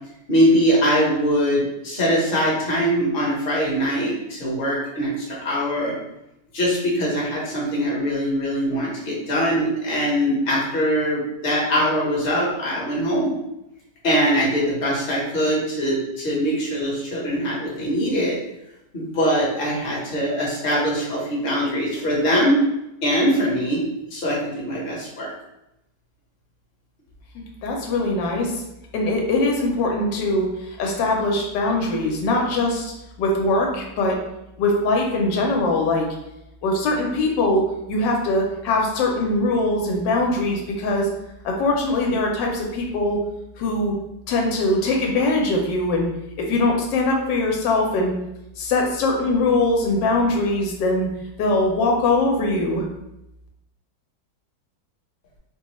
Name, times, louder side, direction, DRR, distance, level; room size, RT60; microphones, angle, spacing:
voice 1, 0.3-5.9 6.5-13.3 14.0-18.4 18.9-22.6 23.0-23.8 24.1-25.3, equal, 35° left, -5 dB, 1.0 m, -22 dB
voice 2, 27.6-28.6 28.9-32.9 33.2-34.2 34.6-36.1 36.6-41.1 41.4-43.2 43.6-43.9 44.3-46.1 46.4-48.1 48.6-51.1 51.4-52.8, left 2 dB, 90° left, 0 dB, 1.3 m, -22 dB
3.8 x 2.3 x 3.0 m, 0.88 s
omnidirectional pair, 1.9 m